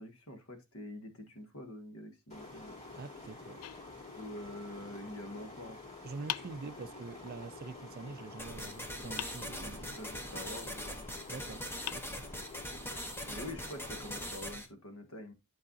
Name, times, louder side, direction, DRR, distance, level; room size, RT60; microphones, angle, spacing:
voice 1, 0.0-2.8 4.1-5.8 9.4-11.1 13.3-15.3, left 1 dB, 70° left, 1.7 m, -46 dB
sound 1, 2.3-14.3, left 3 dB, 30° left, 3.8 m, -49 dB
voice 2, 2.9-3.6 6.0-10.0 11.3-11.6 11.9-12.2, right 4 dB, 45° right, 0.4 m, -45 dB
sound 2, 3.6-4.6 6.3-7.3 9.2-10.1 11.3-11.4 11.9-12.8, left 13 dB, 90° left, 0.4 m, -44 dB
sound 3, 8.4-14.7, equal, 10° left, 1.0 m, -42 dB
11.5 x 4.7 x 2.6 m
head